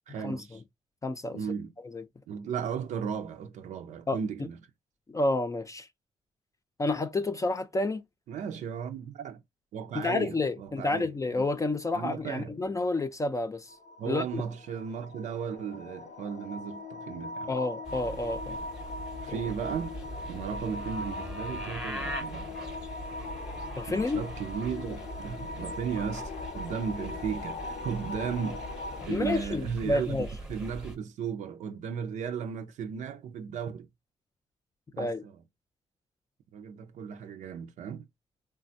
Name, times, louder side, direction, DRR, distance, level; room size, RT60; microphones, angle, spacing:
voice 1, 0.1-0.6 1.3-1.7 2.3-4.6 8.3-9.4 9.7-11.1 11.9-12.5 14.0-17.5 19.2-20.0 20.3-22.5 23.9-28.6 29.1-33.9 34.9-35.4 36.5-38.1, right 7 dB, 80° right, 0.5 m, -35 dB
voice 2, 1.0-1.4 1.9-2.0 4.1-4.2 5.1-5.9 6.8-8.0 10.0-13.8 14.1-14.4 17.5-18.6 19.3-19.4 23.8-24.2 29.1-30.3 35.0-35.2, left 2 dB, 25° left, 0.4 m, -29 dB
sound 1, 13.7-29.1, left 2 dB, 75° left, 0.7 m, -40 dB
sound 2, 17.8-31.0, right 1 dB, 5° right, 0.8 m, -42 dB
3.3 x 2.2 x 2.6 m
cardioid pair, 70°, 12 cm